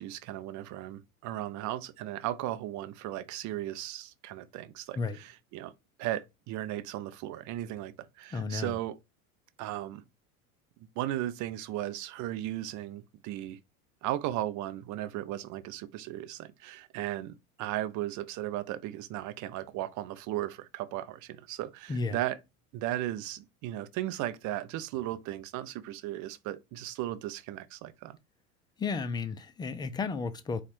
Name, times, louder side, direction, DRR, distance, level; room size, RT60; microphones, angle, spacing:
voice 1, 0.0-5.7 6.0-9.0 9.6-10.0 10.8-13.6 14.0-22.4 22.7-28.2, right 14 dB, 45° right, 0.6 m, -36 dB
voice 2, 8.3-8.8 21.9-22.2 28.8-30.6, left 4 dB, 10° left, 0.4 m, -33 dB
4.3 x 2.4 x 4.3 m
hypercardioid pair, 90°, 43 cm